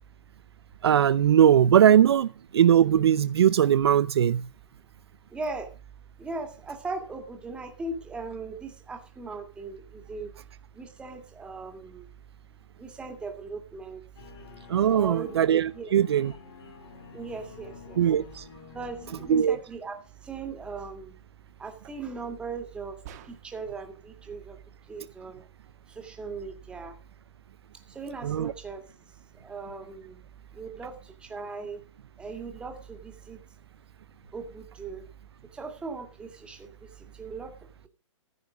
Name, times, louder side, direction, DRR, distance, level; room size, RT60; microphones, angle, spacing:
voice 1, 0.8-4.5 14.7-16.3 18.0-18.4 19.3-19.6 28.2-28.5, right 9 dB, 55° right, 0.6 m, -20 dB
voice 2, 5.3-5.7 6.2-10.3 10.7-12.1 12.8-14.0 14.9-15.4 15.7-15.9 17.1-18.3 18.7-20.0 20.2-21.2 21.6-23.0 23.2-24.6 24.9-25.4 25.9-27.0 27.9-28.9 29.3-30.2 30.5-31.8 32.2-33.4 34.3-35.1 35.5-37.5, right 3 dB, 5° right, 2.1 m, -38 dB
sound 1, 14.2-19.4, left 5 dB, 55° left, 4.9 m, -48 dB
sound 2, 23.1-23.8, right 9 dB, 30° right, 1.7 m, -47 dB
15.0 x 8.5 x 5.1 m
hypercardioid pair, 165°, 16 cm